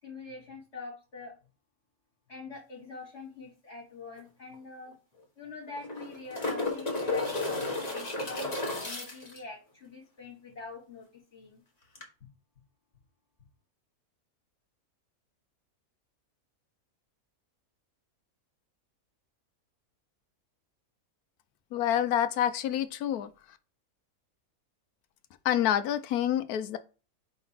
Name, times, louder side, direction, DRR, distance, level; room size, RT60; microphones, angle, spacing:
voice 1, 0.0-1.3 2.3-5.0 5.4-11.1 11.3-11.6, left 4 dB, 45° left, 2.0 m, -44 dB
sound 1, 4.2-4.3 4.5-4.6 5.7-9.4 12.0-12.1, left 2 dB, 30° left, 1.5 m, -33 dB
voice 2, 21.7-23.3 25.4-26.8, left 11 dB, 85° left, 1.2 m, -27 dB
5.1 x 3.9 x 5.7 m
omnidirectional pair, 1.6 m